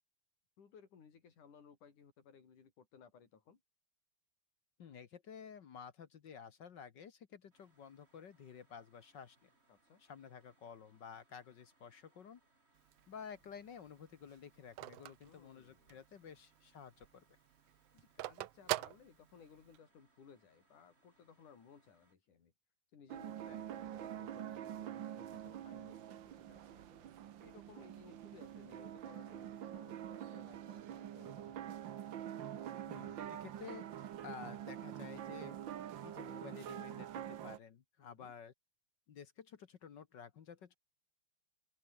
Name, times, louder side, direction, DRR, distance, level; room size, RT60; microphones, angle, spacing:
voice 1, 0.6-3.6 9.7-10.0 15.2-16.4 17.9-22.5 22.9-27.1 27.4-31.8 38.0-38.3, left 6 dB, 75° left, 5.1 m, -61 dB
voice 2, 4.8-9.5 10.0-12.4 13.1-17.2 32.9-35.6 36.0-38.5 39.1-40.7, left 7 dB, 55° left, 1.3 m, -52 dB
sound 1, 7.5-22.2, right 2 dB, 20° right, 3.8 m, -75 dB
Telephone, 12.7-16.2 16.6-16.7 16.9-19.8, right 17 dB, 85° right, 1.4 m, -43 dB
sound 2, 23.1-37.6, right 10 dB, 70° right, 1.1 m, -46 dB
open air
omnidirectional pair, 3.6 m